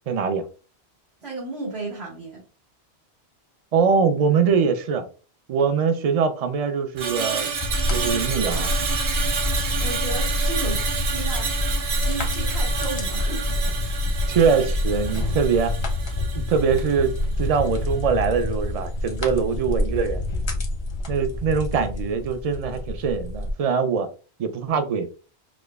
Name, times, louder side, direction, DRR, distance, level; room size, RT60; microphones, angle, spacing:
voice 1, 0.1-0.5 3.7-5.0 5.5-7.5 7.9-8.7 14.3-15.7 16.5-17.1 17.4-20.2 21.1-24.1 24.4-25.1, right 6 dB, 55° right, 0.4 m, -22 dB
voice 2, 1.2-2.4 9.8-10.8 11.1-11.5 12.0-13.6, right 3 dB, 70° right, 1.8 m, -33 dB
Screech, 7.0-17.3 17.6-17.9, right 5 dB, 85° right, 1.0 m, -30 dB
sound 1, 7.6-23.5, left 1 dB, 35° left, 0.5 m, -27 dB
4.9 x 2.2 x 2.3 m
omnidirectional pair, 1.1 m